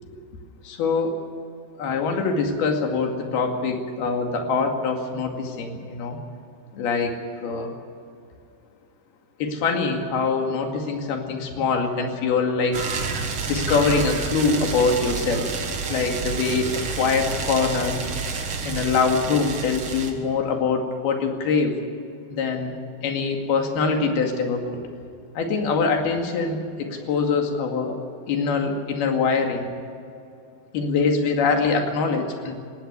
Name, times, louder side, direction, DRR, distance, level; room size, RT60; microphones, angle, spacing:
voice 1, 0.6-1.2 1.8-6.2 6.7-7.1 7.4-7.7 9.4-12.8 13.5-15.5 15.9-18.0 18.6-21.8 22.3-22.8 23.0-24.8 25.4-28.0 28.3-29.7 30.7-32.6, left 4 dB, 75° left, 3 dB, 4.2 m, -24 dB
sound 1, 12.7-20.1, right 4 dB, 45° right, 2.1 m, -29 dB
19.0 x 16.5 x 9.9 m, 2.4 s
omnidirectional pair, 4.5 m